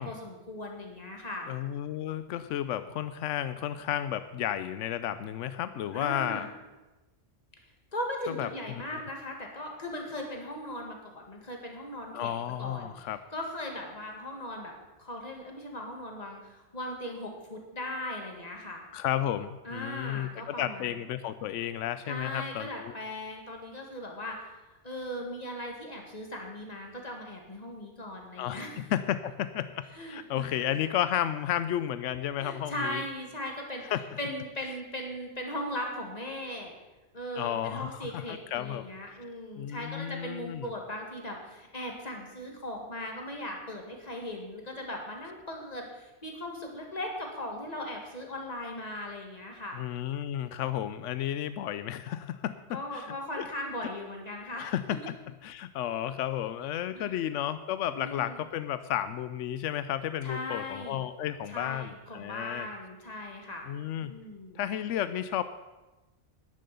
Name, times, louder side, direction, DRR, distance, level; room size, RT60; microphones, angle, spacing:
voice 1, 0.0-1.5 5.9-6.5 7.9-12.9 13.3-14.7 15.0-18.8 19.7-20.9 22.1-24.5 24.8-28.7 29.9-30.6 32.4-33.9 34.2-36.7 37.1-49.8 52.7-54.7 56.9-57.2 57.9-58.4 60.2-61.0 61.5-63.6 64.0-64.6, left 1 dB, 35° left, 1 dB, 2.2 m, -38 dB
voice 2, 1.5-6.4 8.4-8.5 12.1-13.2 18.9-22.9 28.4-33.0 33.9-34.0 37.4-38.9 39.6-40.7 49.7-53.5 54.6-55.1 55.4-62.7 63.7-64.1 64.5-65.4, left 11 dB, 85° left, 12 dB, 0.9 m, -32 dB
10.5 x 10.0 x 6.9 m, 1.1 s
omnidirectional pair, 1.2 m